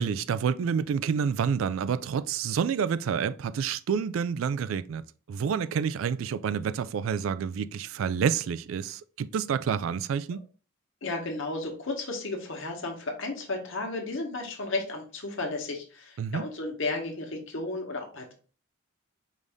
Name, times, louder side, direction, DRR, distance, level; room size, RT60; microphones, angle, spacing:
voice 1, 0.0-5.0 5.3-10.4 16.2-16.4, right 7 dB, 70° right, 0.3 m, -28 dB
voice 2, 11.0-18.3, left 2 dB, 60° left, 1.2 m, -33 dB
5.1 x 2.6 x 3.5 m
head